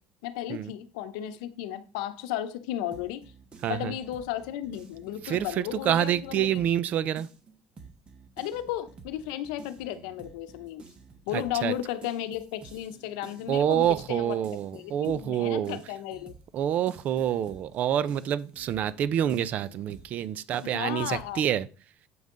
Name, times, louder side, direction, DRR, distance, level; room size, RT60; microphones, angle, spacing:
voice 1, 0.2-3.2 3.7-6.6 8.4-10.8 11.3-14.4 14.7-16.3 20.6-21.4, left 12 dB, 90° left, 0.7 m, -34 dB
sound 1, 2.9-6.9 7.1-21.3, right 4 dB, 30° right, 1.2 m, -51 dB
voice 2, 3.6-3.9 5.2-7.3 11.3-11.7 13.5-15.8 16.5-21.7, right 10 dB, 45° right, 0.5 m, -27 dB
7.7 x 5.4 x 3.8 m
cardioid pair, 130°, 3 cm